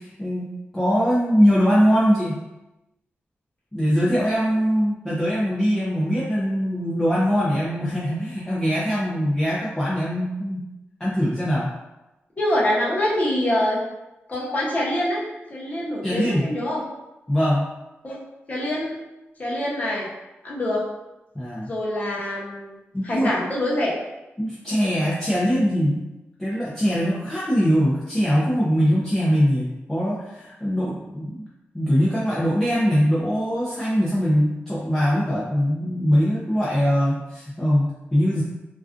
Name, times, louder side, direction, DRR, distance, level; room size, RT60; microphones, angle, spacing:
voice 1, 0.0-2.4 3.7-10.6 11.0-11.7 16.0-16.5 17.3-17.7 21.3-21.7 22.9-23.3 24.4-26.1 26.4-31.4 31.7-38.4, equal, 10° left, -8 dB, 0.4 m, -22 dB
voice 2, 12.4-13.8 14.3-15.2 15.5-16.8 18.0-18.2 18.5-18.9 19.4-20.1 20.4-20.8 21.6-23.9, left 1 dB, 35° left, -5 dB, 0.7 m, -25 dB
2.4 x 2.3 x 2.4 m, 0.99 s
wide cardioid pair, 125°, 4 cm